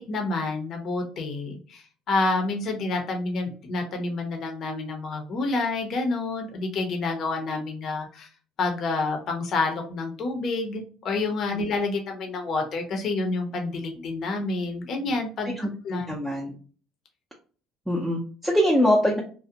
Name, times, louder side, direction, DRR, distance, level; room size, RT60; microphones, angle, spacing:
voice 1, 0.1-8.3 8.6-15.5 15.8-16.1, left 3 dB, 50° left, 3 dB, 0.6 m, -28 dB
voice 2, 16.1-16.5 17.9-19.2, equal, ahead, -3 dB, 0.5 m, -22 dB
2.4 x 2.0 x 2.7 m, 0.41 s
cardioid pair, 115°, 0 cm